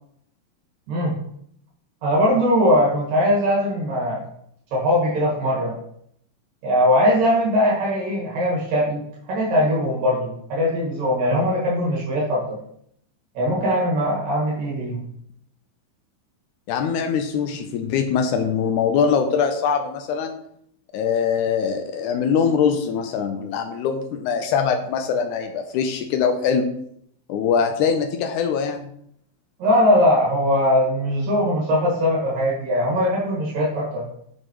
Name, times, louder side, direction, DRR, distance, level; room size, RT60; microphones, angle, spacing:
voice 1, 0.9-1.2 2.0-4.2 4.7-5.8 6.6-12.4 13.4-15.1 29.6-34.1, equal, 70° right, -5 dB, 3.4 m, -20 dB
voice 2, 16.7-20.4 20.9-26.7 27.3-28.9, left 6 dB, 85° left, 6 dB, 1.7 m, -22 dB
8.2 x 6.3 x 3.0 m, 0.71 s
omnidirectional pair, 4.2 m